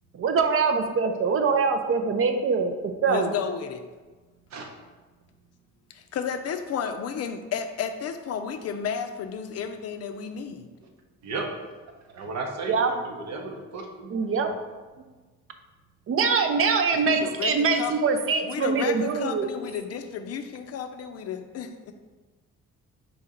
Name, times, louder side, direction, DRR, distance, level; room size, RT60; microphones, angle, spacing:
voice 1, 0.1-2.7 3.0-3.3 12.7-12.9 14.1-14.5 16.1-19.5, right 5 dB, 45° right, 6 dB, 0.5 m, -23 dB
voice 2, 3.1-3.9 5.9-10.7 17.1-17.9 18.4-21.9, left 7 dB, 55° left, 8 dB, 0.4 m, -32 dB
voice 3, 12.1-14.5, right 3 dB, 65° right, 2 dB, 0.8 m, -35 dB
4.1 x 2.9 x 3.7 m, 1.3 s
cardioid pair, 90°, 30 cm